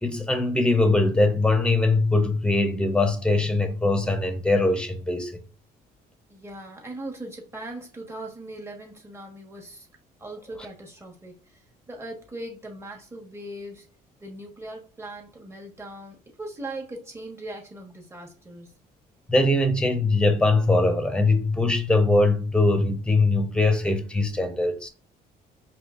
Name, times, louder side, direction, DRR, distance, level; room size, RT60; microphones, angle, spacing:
voice 1, 0.0-5.4 19.3-24.9, left 2 dB, 5° left, 0.8 m, -22 dB
voice 2, 6.3-9.9 10.2-13.9 14.2-18.8, right 1 dB, 15° right, 1.4 m, -39 dB
4.9 x 3.0 x 2.5 m
cardioid pair, 110°, 17 cm